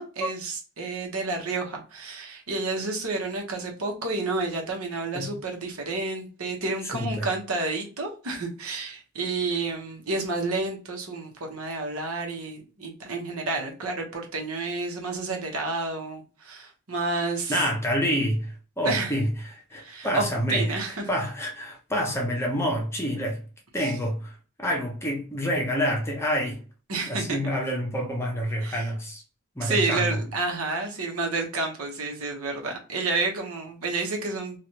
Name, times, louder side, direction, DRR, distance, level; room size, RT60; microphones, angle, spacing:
voice 1, 0.0-17.6 18.8-19.1 19.8-21.0 23.8-23.9 26.9-27.4 28.6-28.9 29.6-34.6, right 3 dB, 75° right, 1.0 m, -30 dB
voice 2, 6.9-7.3 17.5-20.7 21.1-23.4 23.7-26.6 27.1-29.2 29.6-30.2, equal, 10° left, 0.7 m, -27 dB
3.2 x 2.4 x 2.8 m
head